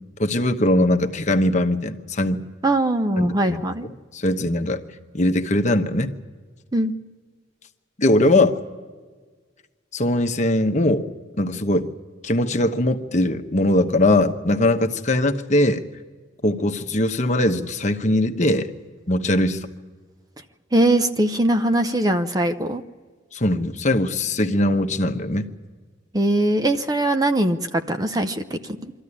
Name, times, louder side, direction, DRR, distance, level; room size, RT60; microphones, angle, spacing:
voice 1, 0.2-2.4 3.2-3.6 3.8-4.8 5.1-6.1 8.0-8.6 9.9-11.1 11.4-11.9 12.2-15.8 16.4-18.7 19.1-19.7 23.3-25.5, left 1 dB, 40° left, 6 dB, 1.1 m, -21 dB
voice 2, 2.6-3.9 6.7-6.9 20.7-22.8 26.1-28.9, right 1 dB, 20° right, 8 dB, 0.7 m, -21 dB
24.0 x 14.0 x 9.9 m, 1.5 s
head